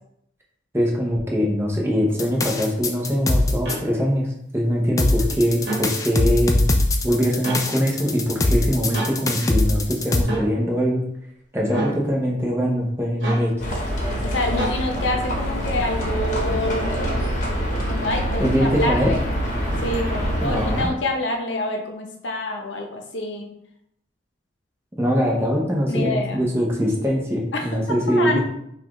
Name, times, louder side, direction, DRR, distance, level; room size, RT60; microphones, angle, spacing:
voice 1, 0.7-4.3 4.5-6.7 7.0-11.0 11.5-13.8 18.4-19.2 20.4-20.9 25.0-28.4, equal, 15° right, -2 dB, 0.8 m, -22 dB
sound 1, 2.2-3.7 5.0-10.2, left 2 dB, 20° left, 0.3 m, -21 dB
sound 2, 3.7-3.8 5.6-5.9 7.4-7.6 8.9-9.1 10.3-10.5 11.7-12.0 13.2-13.5 14.6-14.8, right 2 dB, 65° right, 1.1 m, -27 dB
Livestock farm animals working animals, 13.6-20.9, equal, 40° left, 1.0 m, -25 dB
voice 2, 14.2-16.9 17.9-19.2 19.8-23.5 25.9-26.4 27.5-27.7 28.1-28.4, left 2 dB, 80° left, 3 dB, 0.7 m, -26 dB
5.5 x 2.4 x 3.0 m, 0.77 s
head